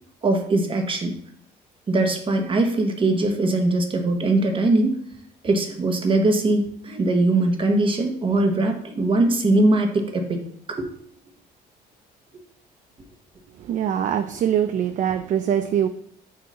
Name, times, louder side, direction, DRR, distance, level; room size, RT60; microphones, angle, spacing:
voice 1, 0.2-1.1 1.9-5.0 5.4-10.4 10.7-10.9, right 2 dB, 30° right, 4 dB, 1.1 m, -21 dB
voice 2, 13.6-15.9, right 9 dB, 50° right, 10 dB, 0.4 m, -23 dB
7.5 x 2.8 x 5.5 m, 0.67 s
cardioid pair, 110°, 17 cm